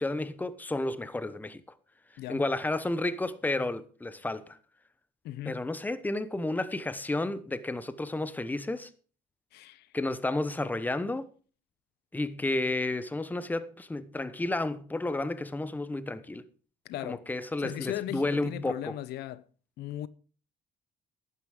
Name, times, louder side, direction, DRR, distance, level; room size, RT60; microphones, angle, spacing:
voice 1, 0.0-1.6 2.3-4.6 5.4-8.9 9.9-11.3 12.1-16.4 17.0-19.0, left 2 dB, 10° left, 0.9 m, -31 dB
voice 2, 5.2-5.6 9.5-9.9 16.8-17.3 17.6-19.4 19.8-20.1, left 13 dB, 75° left, 0.6 m, -37 dB
11.5 x 9.4 x 5.0 m
cardioid pair, 110°, 17 cm